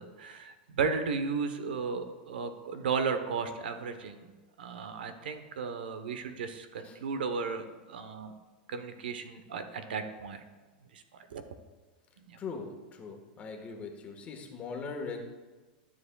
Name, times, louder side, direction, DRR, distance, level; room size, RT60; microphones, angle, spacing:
voice 1, 0.0-4.2 4.6-8.3 8.7-10.4 10.9-11.0 11.3-11.4 12.3-12.4, right 5 dB, 85° right, 9 dB, 0.9 m, -34 dB
voice 2, 12.4-15.2, left 4 dB, 25° left, 3 dB, 1.4 m, -40 dB
12.5 x 7.3 x 2.3 m, 1.3 s
hypercardioid pair, 125°, 5 cm